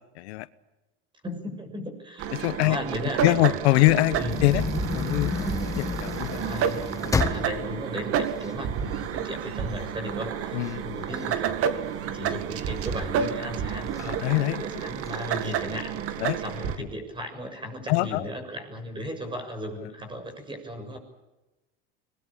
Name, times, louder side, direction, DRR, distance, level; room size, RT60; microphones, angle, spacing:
voice 1, 0.2-0.5 2.3-2.8 3.2-4.2 4.4-4.6 4.9-6.4 7.0-7.2 10.5-10.8 14.0-14.6 16.2-16.4 16.8-16.9 17.9-18.3 19.8-19.9, left 19 dB, 85° left, 15 dB, 1.2 m, -24 dB
voice 2, 1.2-2.3 2.6-3.6 4.1-4.4 6.3-21.0, equal, 15° right, 8 dB, 6.8 m, -36 dB
sound 1, 2.2-16.8, right 8 dB, 45° right, 2.2 m, -30 dB
sound 2, 4.1-9.3 9.8-9.9 10.2-12.3 12.8-13.4 14.0-14.1 14.4-14.5 14.9-15.5, left 4 dB, 10° left, 1.7 m, -31 dB
25.0 x 20.5 x 8.8 m, 1.0 s
supercardioid pair, 130°, 32 cm